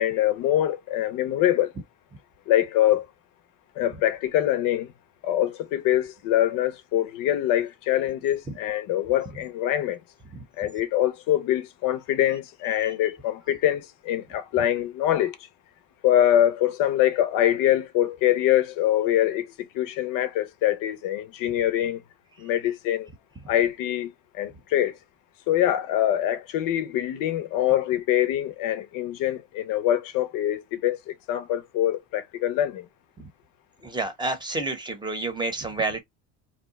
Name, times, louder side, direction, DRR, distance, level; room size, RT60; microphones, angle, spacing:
voice 1, 0.0-1.7 2.5-3.0 3.8-4.9 5.2-10.0 10.6-15.4 16.0-19.5 19.7-22.0 22.4-23.1 23.5-24.1 24.4-24.9 25.5-32.8, left 12 dB, 60° left, 0.7 m, -24 dB
voice 2, 33.8-36.0, right 3 dB, 10° right, 0.9 m, -29 dB
2.8 x 2.1 x 3.9 m
cardioid pair, 125°, 37 cm